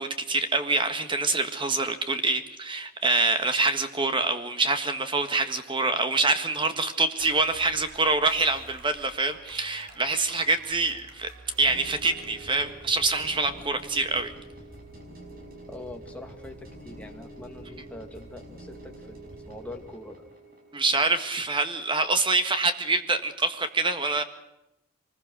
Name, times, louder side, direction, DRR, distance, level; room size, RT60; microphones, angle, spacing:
voice 1, 0.0-11.3 11.6-14.3 20.7-24.2, right 3 dB, 25° right, 8 dB, 1.6 m, -25 dB
sound 1, 7.2-13.1, right 3 dB, 65° right, 3.0 m, -50 dB
sound 2, 11.6-21.7, right 1 dB, 45° right, 5.3 m, -46 dB
voice 2, 15.7-20.2, left 1 dB, 5° left, 2 dB, 2.3 m, -43 dB
24.0 x 20.5 x 6.4 m, 0.92 s
head